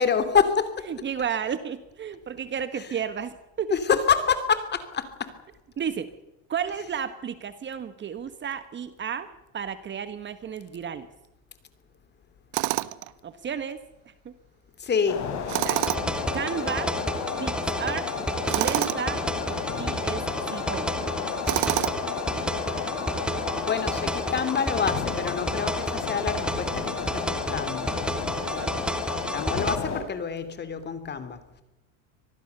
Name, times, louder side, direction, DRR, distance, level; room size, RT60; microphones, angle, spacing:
voice 1, 0.0-0.7 3.7-5.0 14.8-15.2 23.6-27.9 29.3-31.4, left 6 dB, 25° left, 11 dB, 2.9 m, -26 dB
voice 2, 0.9-3.8 5.8-6.1 6.5-11.1 13.2-13.8 14.2-14.3 15.6-15.8 16.3-16.9 17.4-18.1 18.6-20.2 20.5-20.9 28.3-28.7, right 7 dB, 30° right, 12 dB, 1.4 m, -33 dB
Tools, 12.5-13.1 15.5-16.2 18.5-19.0 21.5-22.2, right 21 dB, 60° right, 1.0 m, -27 dB
sound 1, 15.1-30.0, left 6 dB, 45° left, 5.3 m, -32 dB
sound 2, 15.7-29.8, right 1 dB, ahead, 1.3 m, -32 dB
25.5 x 19.0 x 6.9 m, 1.0 s
supercardioid pair, 120°, 38 cm